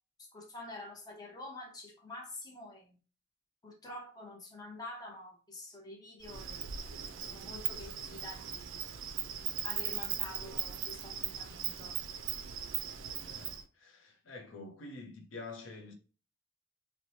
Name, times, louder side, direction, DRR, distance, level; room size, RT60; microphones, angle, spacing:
voice 1, 0.2-3.0 3.6-6.8 7.2-8.8 9.6-12.0, left 2 dB, 20° left, 0.7 m, -47 dB
Insect, 6.2-13.6, right 9 dB, 75° right, 0.3 m, -39 dB
voice 2, 13.2-15.9, left 3 dB, 80° left, 0.6 m, -47 dB
2.9 x 2.1 x 2.7 m
head